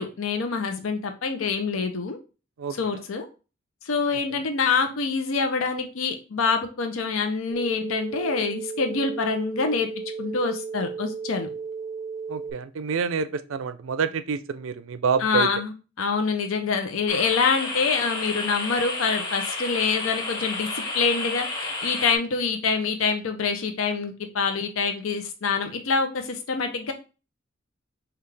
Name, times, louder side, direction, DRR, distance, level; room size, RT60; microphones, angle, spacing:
voice 1, 0.0-2.2 2.7-3.3 3.8-9.9 10.2-11.5 15.2-26.9, left 5 dB, 80° left, 6 dB, 0.6 m, -26 dB
voice 2, 2.6-3.0 12.3-15.5, right 6 dB, 70° right, 12 dB, 0.4 m, -27 dB
sound 1, 7.5-12.5, right 5 dB, ahead, 0.7 m, -34 dB
sound 2, 17.1-22.2, left 3 dB, 20° left, 1.0 m, -31 dB
5.6 x 2.3 x 3.3 m, 0.32 s
head